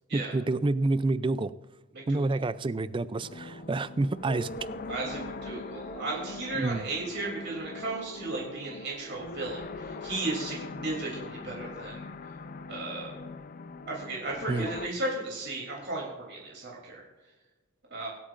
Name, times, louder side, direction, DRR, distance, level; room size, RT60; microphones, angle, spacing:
voice 1, 0.1-1.5 2.1-4.5 6.5-6.8 14.5-14.7, right 2 dB, 25° right, 0.4 m, -28 dB
voice 2, 1.9-2.4 4.9-12.1 12.7-13.1 13.9-17.0 17.9-18.1, right 2 dB, 55° right, 3.1 m, -35 dB
sound 1, 3.2-14.9, left 3 dB, 40° left, 0.5 m, -41 dB
24.5 x 8.6 x 2.5 m
head